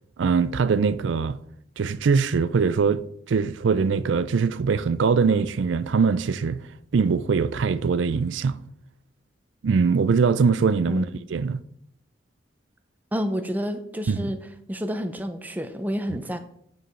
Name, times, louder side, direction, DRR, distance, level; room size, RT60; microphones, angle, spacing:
voice 1, 0.2-1.4 1.8-6.6 6.9-8.6 9.6-11.1 11.3-11.6 14.1-14.3, right 5 dB, 80° right, 0.4 m, -22 dB
voice 2, 13.1-14.4 14.7-16.4, equal, 10° right, 0.6 m, -29 dB
9.1 x 4.7 x 5.5 m
head